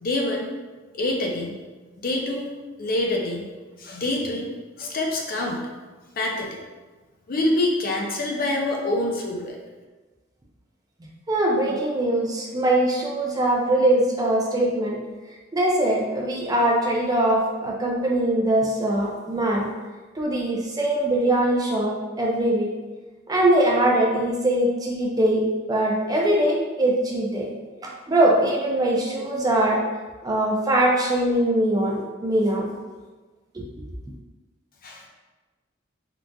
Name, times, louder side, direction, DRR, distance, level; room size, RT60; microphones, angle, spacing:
voice 1, 0.0-0.5 0.9-1.6 2.0-2.5 2.8-3.5 3.8-4.5 4.8-5.6 6.2-6.6 7.3-9.6 34.8-35.0, left 2 dB, 50° left, 0 dB, 0.5 m, -26 dB
voice 2, 11.3-15.0 15.5-19.7 20.1-22.7 23.3-27.5 27.8-29.8 30.2-32.7 33.5-33.7, right 1 dB, 20° right, -2 dB, 0.4 m, -22 dB
3.8 x 2.4 x 2.2 m, 1.3 s
head